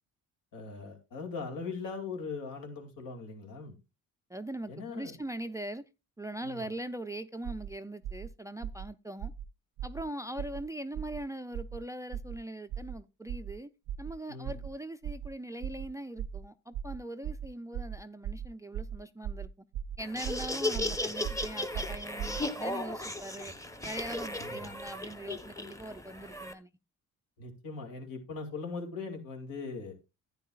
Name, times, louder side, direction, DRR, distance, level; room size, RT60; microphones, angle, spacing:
voice 1, 0.5-3.8 4.7-5.1 6.4-6.7 14.3-14.6 24.4-24.7 27.4-30.0, left 4 dB, 75° left, 2.5 m, -40 dB
voice 2, 4.3-5.8 6.2-9.3 9.8-13.7 14.0-19.5 20.0-23.5 23.8-26.7, right 1 dB, 10° right, 0.4 m, -41 dB
sound 1, 7.4-7.7 8.0-8.3 8.6-8.9 9.2-9.5 9.8-10.0 10.4-10.6 10.9-11.2 11.5-11.8 12.1-12.4 12.7-13.0 13.3-13.5 13.9-14.1 14.4-14.7 15.0-15.3 15.6-15.9 16.2-16.4 16.7-17.0 17.2-17.5 17.7-18.0 18.2-18.5 18.7-19.0 19.2-19.5 19.7-20.0 20.2-20.5 20.7-21.0 21.2-21.5 21.7-22.4, right 9 dB, 70° right, 0.5 m, -37 dB
Laughter, 20.0-26.5, left 2 dB, 10° left, 0.9 m, -36 dB
10.5 x 9.3 x 2.4 m
cardioid pair, 85°, 34 cm